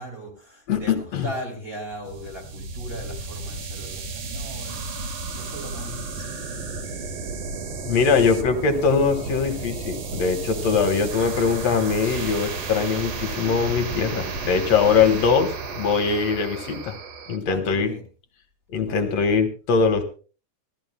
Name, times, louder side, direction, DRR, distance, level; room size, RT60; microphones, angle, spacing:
voice 1, 0.0-6.4 10.6-10.8 13.6-13.9 17.4-18.1 18.7-19.3, right 1 dB, 20° right, 2.9 m, -38 dB
voice 2, 0.7-1.3 7.9-17.0 17.3-17.9 18.7-20.0, left 5 dB, 60° left, 2.4 m, -22 dB
sound 1, 2.0-17.4, right 3 dB, 55° right, 2.5 m, -33 dB
26.0 x 14.0 x 2.2 m
omnidirectional pair, 3.6 m